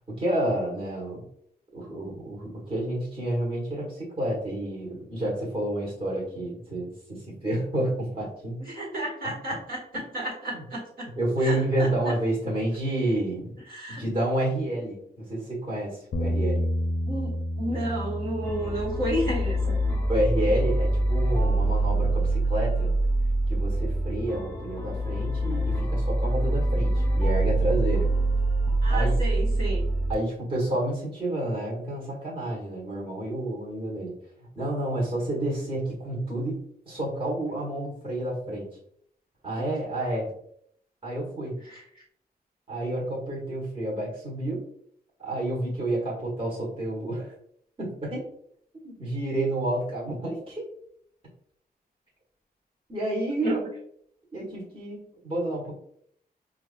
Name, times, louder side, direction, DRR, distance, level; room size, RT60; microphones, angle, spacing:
voice 1, 0.1-1.2 1.7-8.6 9.2-9.3 10.5-10.6 11.2-13.5 13.9-16.7 20.1-22.9 23.5-28.1 28.9-29.2 30.1-34.1 34.5-38.7 39.4-40.3 41.0-41.6 42.7-44.6 45.2-47.3 47.8-48.2 48.8-50.6 52.9-53.6 54.3-55.7, right 1 dB, 35° right, -5 dB, 1.4 m, -29 dB
voice 2, 8.6-11.1 11.4-12.1 13.7-14.0 17.1-19.8 28.8-29.9 41.6-41.8 53.4-53.6, right 1 dB, 65° right, -6 dB, 1.4 m, -32 dB
Bass guitar, 16.1-22.4, equal, 65° left, 0.4 m, -32 dB
sound 1, 18.4-30.1, right 1 dB, 15° left, 1.1 m, -25 dB
4.7 x 2.5 x 2.4 m, 0.66 s
wide cardioid pair, 105°, 16 cm